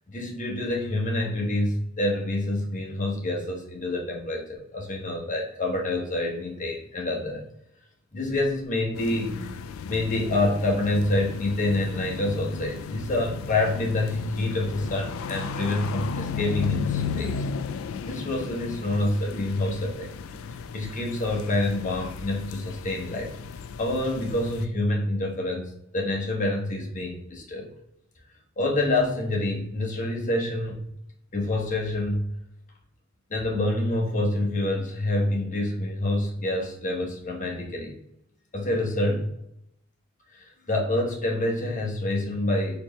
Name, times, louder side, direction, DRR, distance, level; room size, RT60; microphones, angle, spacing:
voice 1, 0.1-7.4 8.1-9.4 9.9-17.4 18.1-20.1 20.7-23.3 23.8-27.7 28.6-30.8 31.3-32.2 33.3-37.9 38.5-39.3 40.3-42.8, left 2 dB, 40° left, 0 dB, 1.0 m, -27 dB
sound 1, 8.9-24.7, left 6 dB, 80° left, 0.3 m, -35 dB
4.4 x 3.0 x 3.1 m, 0.76 s
head